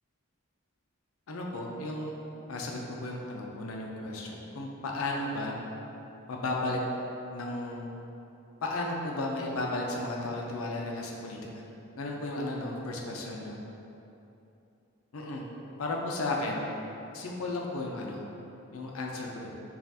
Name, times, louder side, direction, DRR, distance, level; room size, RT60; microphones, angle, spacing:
voice 1, 1.3-2.1 2.5-5.5 6.3-6.8 7.3-7.9 8.6-11.6 12.0-13.6 15.1-15.4 15.8-16.6 17.1-18.2 18.7-19.5, left 2 dB, 85° left, -1 dB, 0.5 m, -34 dB
5.6 x 2.4 x 2.7 m, 2.8 s
head